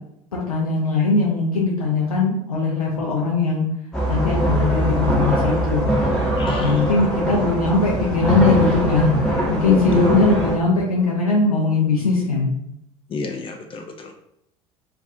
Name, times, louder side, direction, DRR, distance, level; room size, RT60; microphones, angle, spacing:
voice 1, 0.3-3.6 4.1-5.9 6.6-12.5, left 3 dB, 85° left, -3 dB, 0.5 m, -20 dB
sound 1, 3.9-10.6, right 1 dB, 5° left, 0.8 m, -22 dB
voice 2, 6.4-6.8 9.6-10.1 13.1-14.1, left 4 dB, 30° left, 4 dB, 0.4 m, -29 dB
2.4 x 2.4 x 2.4 m, 0.75 s
figure-of-eight pair, 65°, 18 cm